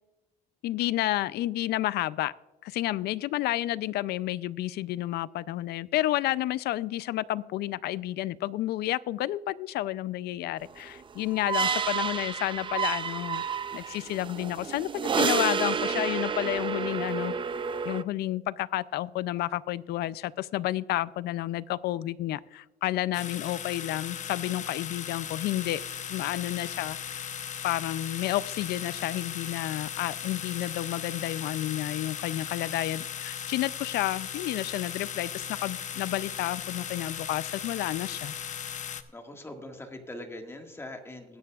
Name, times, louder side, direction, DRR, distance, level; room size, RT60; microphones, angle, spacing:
voice 1, 0.6-2.3 2.6-13.4 13.7-17.3 17.8-25.8 26.1-27.3 27.6-38.3, left 15 dB, 75° left, 18 dB, 0.5 m, -31 dB
sound 1, 10.8-18.0, right 6 dB, 30° right, 0.5 m, -30 dB
sound 2, 23.1-39.0, left 8 dB, 45° left, 0.9 m, -37 dB
voice 2, 39.1-41.4, left 1 dB, 15° left, 3 dB, 1.8 m, -42 dB
22.0 x 9.5 x 2.4 m, 1.1 s
cardioid pair, 110°, 17 cm